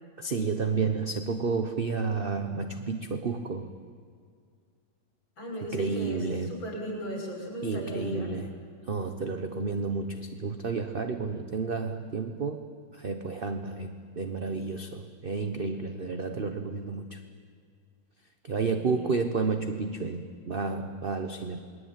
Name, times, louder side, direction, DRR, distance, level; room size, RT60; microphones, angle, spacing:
voice 1, 0.2-3.7 5.7-6.5 7.6-8.6 8.9-12.6 12.9-17.2 18.4-21.6, right 4 dB, 40° right, 7 dB, 0.9 m, -31 dB
voice 2, 5.4-8.4 18.6-19.2, right 1 dB, 60° left, 0 dB, 6.6 m, -37 dB
28.0 x 21.0 x 9.1 m, 2.1 s
omnidirectional pair, 2.3 m